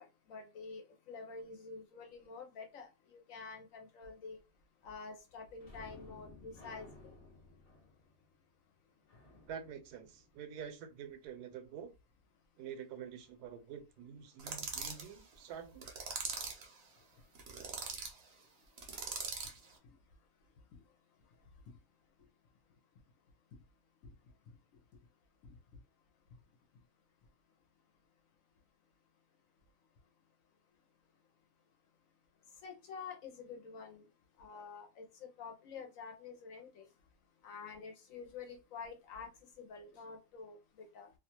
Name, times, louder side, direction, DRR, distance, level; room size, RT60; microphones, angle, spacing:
voice 1, 0.0-4.4 4.8-7.2 25.4-25.5 32.6-34.1 34.4-36.9 37.4-39.3 39.6-41.1, left 5 dB, 65° left, 0.9 m, -48 dB
sound 1, 5.6-11.0 18.3-18.5 18.8-19.0, left 2 dB, 40° left, 0.6 m, -57 dB
voice 2, 9.5-11.9 12.6-15.9, right 8 dB, 80° right, 1.1 m, -47 dB
sound 2, 14.4-15.1 15.8-16.7 17.4-18.1 18.8-19.6, right 5 dB, 55° right, 0.7 m, -41 dB
2.7 x 2.3 x 2.9 m
omnidirectional pair, 1.7 m